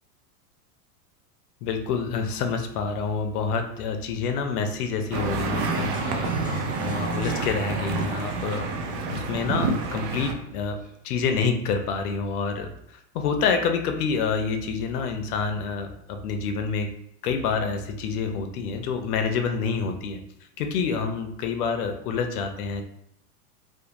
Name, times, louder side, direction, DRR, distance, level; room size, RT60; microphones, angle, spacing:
voice 1, 1.6-6.3 6.8-8.7 9.1-10.8 11.0-12.7 13.1-16.9 17.2-20.2 20.6-22.8, left 5 dB, 75° left, 6 dB, 0.6 m, -27 dB
sound 1, 5.1-10.3, right 4 dB, 75° right, 0.6 m, -28 dB
sound 2, 5.5-10.9, left 2 dB, 20° left, 0.6 m, -39 dB
2.5 x 2.0 x 2.9 m, 0.72 s
supercardioid pair, 135°, 45 cm